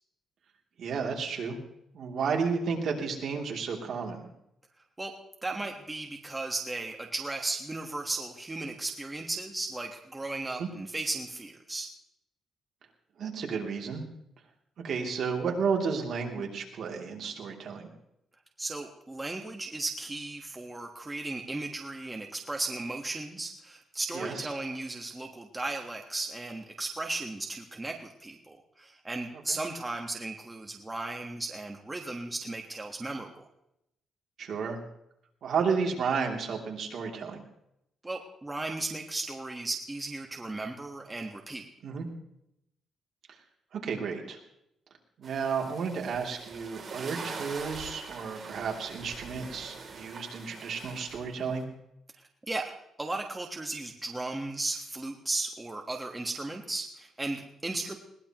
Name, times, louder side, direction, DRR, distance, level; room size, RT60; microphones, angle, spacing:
voice 1, 0.8-1.6 1.9-4.3 10.6-10.7 13.2-14.0 14.8-17.9 24.1-24.5 29.5-29.6 34.4-34.8 35.4-37.4 41.8-42.1 43.7-44.4 45.2-51.6, right 5 dB, 55° right, 0 dB, 3.0 m, -32 dB
voice 2, 5.4-11.9 18.6-33.4 38.0-41.7 52.2-52.7 53.0-57.9, right 2 dB, 15° right, 2 dB, 1.4 m, -35 dB
sound 1, 45.2-51.6, right 4 dB, 40° right, 3.2 m, -43 dB
21.0 x 19.0 x 3.1 m, 0.80 s
cardioid pair, 145°, 0 cm